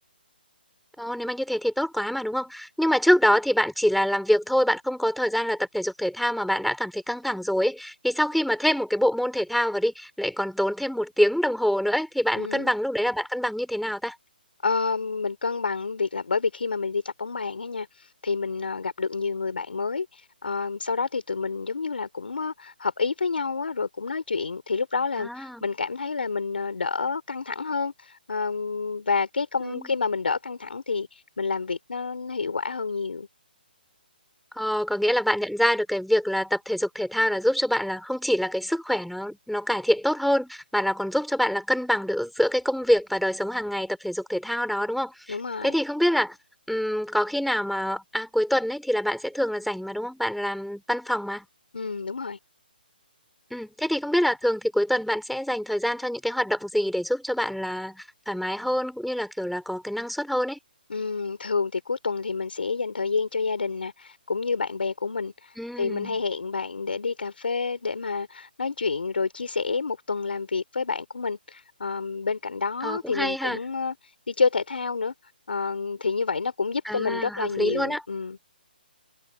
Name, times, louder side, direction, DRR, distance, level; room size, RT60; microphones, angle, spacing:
voice 1, 1.0-14.1 25.2-25.7 29.6-29.9 34.6-45.4 45.6-46.4 46.7-51.5 53.5-60.6 65.6-66.2 72.8-73.6 76.9-78.0, equal, ahead, 5.6 m, -25 dB
voice 2, 12.4-12.7 14.6-33.3 45.3-45.7 51.7-52.4 60.9-78.4, left 4 dB, 80° left, 4.2 m, -29 dB
hypercardioid pair, 150°, 5 cm